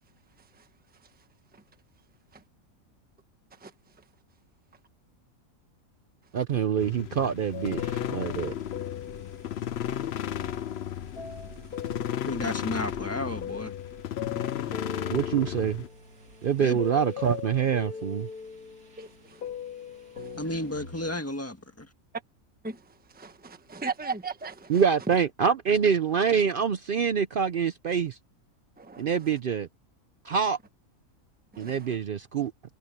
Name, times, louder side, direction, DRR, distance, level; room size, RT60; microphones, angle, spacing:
voice 1, 6.3-8.5 15.1-15.8 16.4-18.3 24.7-28.2 29.0-29.7 30.2-30.6 31.6-32.5, right 7 dB, 65° right, 0.5 m, -25 dB
sound 1, 6.8-15.9, left 10 dB, 60° left, 0.7 m, -34 dB
sound 2, 6.9-21.5, right 3 dB, 85° right, 3.1 m, -55 dB
sound 3, 7.5-12.7 13.2-21.2, left 7 dB, 80° left, 2.6 m, -41 dB
voice 2, 12.3-13.8 16.6-16.8 20.4-21.9, left 1 dB, 10° left, 1.6 m, -33 dB
voice 3, 19.0-19.4 20.2-20.3 22.6-24.8 28.8-29.1 31.5-32.0, right 4 dB, 5° right, 1.2 m, -38 dB
omnidirectional pair, 1.5 m